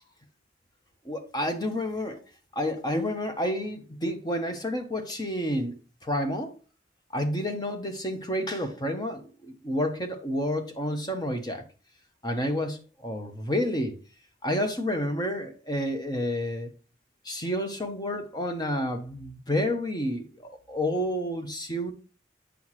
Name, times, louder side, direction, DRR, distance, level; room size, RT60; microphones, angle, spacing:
voice 1, 1.0-2.2 2.5-5.8 6.0-6.5 7.1-11.6 12.2-14.0 14.4-16.7 17.2-21.9, equal, 20° left, 0.9 m, -30 dB
8.4 x 5.8 x 3.1 m
head